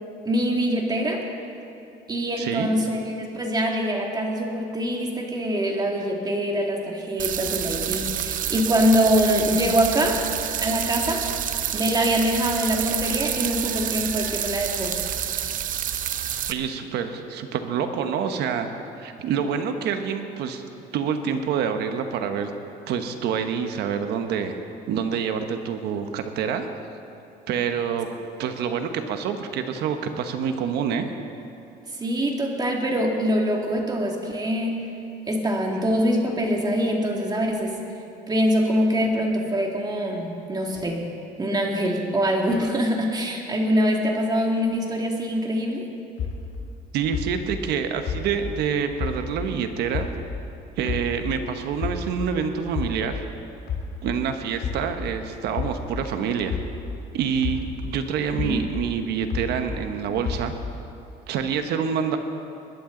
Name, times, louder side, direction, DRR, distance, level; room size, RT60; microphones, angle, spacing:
voice 1, 0.2-1.2 2.1-10.2 10.6-11.3 11.7-15.0 32.0-34.9 35.3-37.8 38.3-41.0 41.4-45.9 58.3-58.6, equal, 25° right, 0 dB, 2.2 m, -24 dB
voice 2, 2.4-2.7 16.5-18.7 19.0-20.6 20.9-22.5 22.9-24.6 24.9-26.6 27.5-28.1 28.4-31.1 46.9-50.1 50.8-53.2 54.0-56.6 57.1-60.5 61.3-62.2, right 7 dB, 80° right, 7 dB, 1.1 m, -27 dB
sound 1, 7.2-16.5, right 10 dB, 55° right, 0.7 m, -28 dB
sound 2, 46.2-49.6 49.9-52.4 52.7-57.1 57.4-59.9 60.2-60.9, left 5 dB, 65° left, 1.9 m, -31 dB
20.5 x 12.0 x 3.9 m, 2.7 s
cardioid pair, 110°, 17 cm